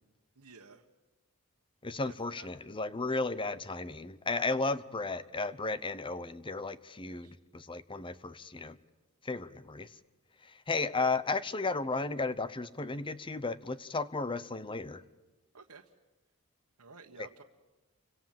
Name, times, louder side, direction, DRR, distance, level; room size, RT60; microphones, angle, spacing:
voice 1, 0.3-0.8 2.0-2.5 7.0-7.3 15.5-15.9 16.8-17.4, right 4 dB, 85° right, 1 dB, 1.5 m, -53 dB
voice 2, 1.8-8.8 9.2-9.9 10.4-15.0, left 3 dB, 25° left, 15 dB, 0.8 m, -34 dB
29.5 x 25.5 x 7.6 m, 1.1 s
head